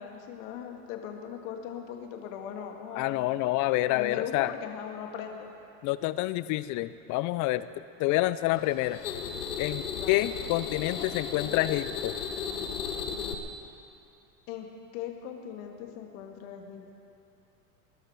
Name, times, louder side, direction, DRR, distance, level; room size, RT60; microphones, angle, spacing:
voice 1, 0.0-3.4 3.9-5.5 9.9-10.2 14.5-14.7 14.9-16.9, left 8 dB, 65° left, 3 dB, 1.9 m, -39 dB
voice 2, 3.0-4.5 5.8-7.7 8.0-9.0 9.6-12.2, left 16 dB, 45° left, 15 dB, 0.5 m, -28 dB
sound 1, 8.5-13.3, left 6 dB, 90° left, 1.3 m, -35 dB
21.0 x 11.5 x 4.7 m, 2.6 s
hypercardioid pair, 100°, 43 cm